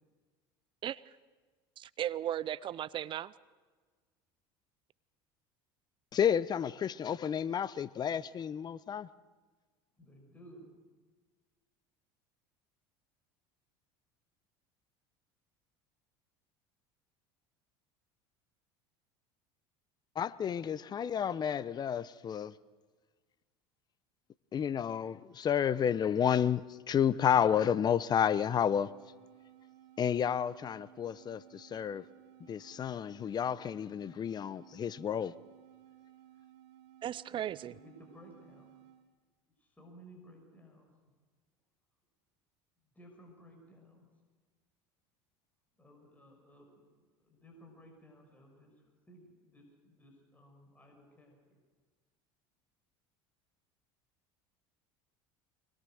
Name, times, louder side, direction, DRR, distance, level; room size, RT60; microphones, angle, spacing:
voice 1, 1.8-3.3 37.0-37.7, right 11 dB, 40° right, 0.6 m, -36 dB
voice 2, 6.1-9.1 20.1-22.5 24.5-28.9 30.0-32.0 32.5-35.3, left 8 dB, 35° left, 0.8 m, -31 dB
voice 3, 10.0-10.8 37.6-38.7 39.6-41.1 42.9-44.1 45.8-46.9 47.2-51.6, equal, 10° left, 6.0 m, -57 dB
sound 1, 28.7-39.1, right 12 dB, 70° right, 2.5 m, -58 dB
23.5 x 20.5 x 6.5 m
supercardioid pair, 100°, 13 cm